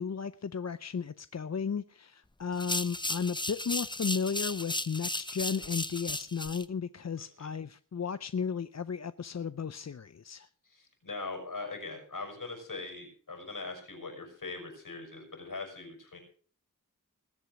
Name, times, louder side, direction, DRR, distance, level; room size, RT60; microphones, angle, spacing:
voice 1, 0.0-10.5, left 6 dB, 55° left, 0.6 m, -34 dB
sound 1, 2.5-6.6, left 2 dB, 15° left, 0.9 m, -35 dB
voice 2, 7.2-7.5 10.7-16.2, left 3 dB, 75° left, 6.2 m, -41 dB
20.0 x 8.3 x 5.9 m
wide cardioid pair, 60°, 32 cm